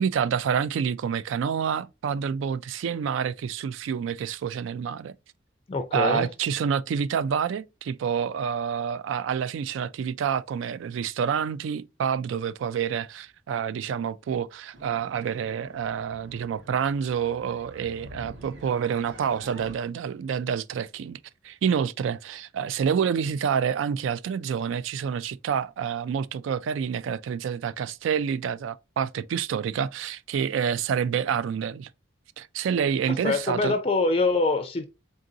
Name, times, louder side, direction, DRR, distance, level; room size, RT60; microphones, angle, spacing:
voice 1, 0.0-5.1 5.9-21.2 21.4-31.9 32.4-33.8, right 7 dB, 90° right, 0.3 m, -28 dB
voice 2, 5.7-6.3 33.2-34.9, left 3 dB, 30° left, 0.3 m, -24 dB
sound 1, 14.7-19.7, right 1 dB, 70° right, 0.8 m, -47 dB
3.8 x 3.7 x 2.6 m
head